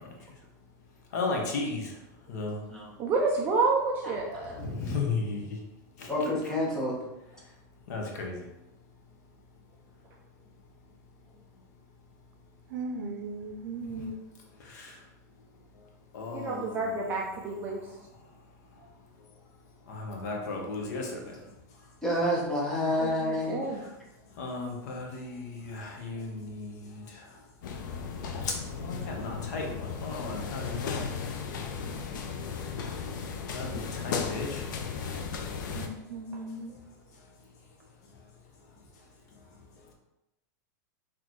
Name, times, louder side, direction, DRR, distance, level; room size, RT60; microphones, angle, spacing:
voice 1, 1.1-1.9 2.3-2.6 4.6-5.4 6.0-6.1 7.9-8.4 14.7-14.9 16.1-17.0 19.9-21.3 24.4-27.0 28.4-31.0 33.5-34.6, left 3 dB, 60° left, 1 dB, 0.9 m, -35 dB
voice 2, 3.0-4.7 16.3-17.8 23.0-23.8, right 3 dB, 20° right, -1 dB, 0.3 m, -29 dB
voice 3, 6.1-7.0 22.0-23.6, left 1 dB, 5° left, -5 dB, 0.8 m, -28 dB
voice 4, 12.7-14.1 35.7-36.7, right 2 dB, 75° right, 5 dB, 0.6 m, -37 dB
sound 1, 27.6-35.9, left 6 dB, 85° left, 0.6 m, -35 dB
4.1 x 3.0 x 3.1 m, 0.93 s
supercardioid pair, 175°, 10 cm